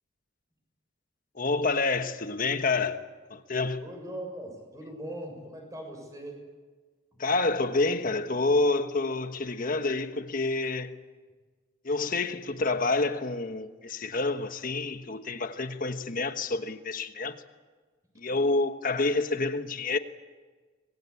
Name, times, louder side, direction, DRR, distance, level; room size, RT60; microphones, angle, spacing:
voice 1, 1.3-3.8 7.2-10.9 11.8-17.4 18.2-20.0, left 3 dB, 45° left, 1.3 m, -28 dB
voice 2, 3.8-6.4 7.1-7.2, right 1 dB, 15° right, 7.0 m, -40 dB
26.0 x 21.5 x 8.5 m
head